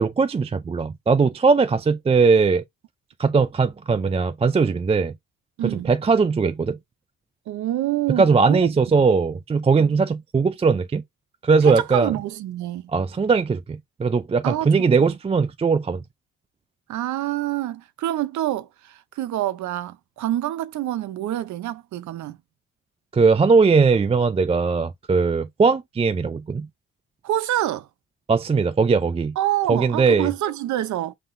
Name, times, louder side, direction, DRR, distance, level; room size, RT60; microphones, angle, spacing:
voice 1, 0.0-2.6 3.2-5.1 5.8-6.8 8.1-11.0 11.4-12.1 12.9-16.0 23.1-26.7 28.3-29.3 29.7-30.3, right 4 dB, 20° right, 0.4 m, -19 dB
voice 2, 5.6-5.9 7.5-9.0 9.8-9.9 11.6-12.9 14.4-15.1 16.9-22.4 27.2-27.9 29.4-31.1, right 13 dB, 75° right, 0.7 m, -27 dB
5.5 x 3.6 x 2.6 m
cardioid pair, 90°, 30 cm